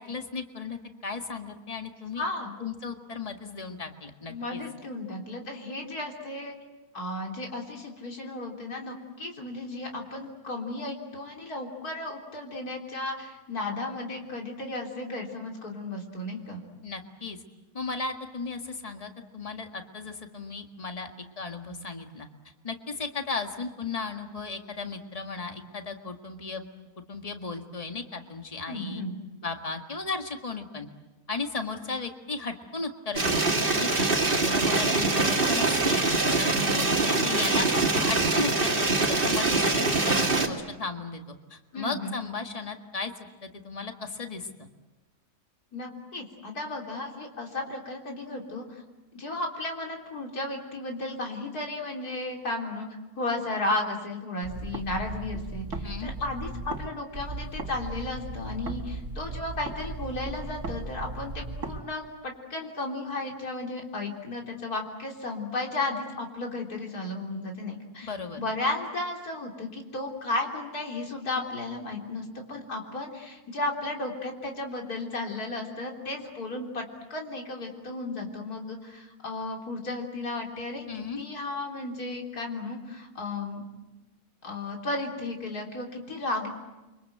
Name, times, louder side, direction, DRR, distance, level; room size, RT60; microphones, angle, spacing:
voice 1, 0.0-2.2 2.6-4.6 16.8-17.4 17.7-22.3 22.6-26.7 27.1-29.0 29.4-30.9 31.3-34.1 34.4-34.9 35.3-36.0 36.4-37.7 38.0-43.1 43.4-44.5 55.8-56.1 68.0-68.4 80.9-81.2, left 4 dB, 25° left, 5 dB, 1.8 m, -35 dB
voice 2, 2.2-2.5 4.3-6.5 6.9-16.6 28.7-29.2 34.9-35.3 41.7-42.2 45.7-48.8 49.1-52.9 53.2-76.8 77.1-83.6 84.4-86.5, left 2 dB, 80° left, 1 dB, 4.0 m, -34 dB
sound 1, 33.2-40.5, right 3 dB, 35° right, 2.5 m, -24 dB
sound 2, 54.4-56.9 57.1-61.8, right 3 dB, 55° right, 2.4 m, -37 dB
30.0 x 24.5 x 7.9 m, 1.1 s
omnidirectional pair, 1.6 m